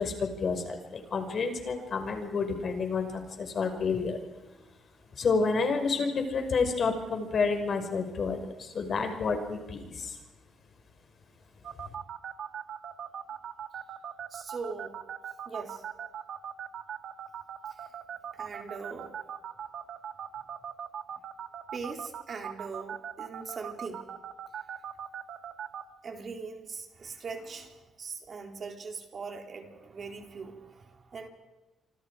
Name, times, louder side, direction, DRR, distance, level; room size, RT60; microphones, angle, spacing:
voice 1, 0.0-3.1 3.4-4.2 5.2-8.5 8.7-10.1, left 4 dB, 50° left, 5 dB, 5.8 m, -29 dB
voice 2, 1.0-1.3 1.8-2.1 4.4-4.7 14.3-14.9 15.5-15.9 17.7-17.9 18.3-19.2 21.7-24.0 26.0-31.3, right 4 dB, 45° right, 3 dB, 3.9 m, -41 dB
sound 1, 11.6-25.8, right 9 dB, 65° right, 1.8 m, -39 dB
28.0 x 25.5 x 5.0 m, 1.1 s
cardioid pair, 90°, 0 cm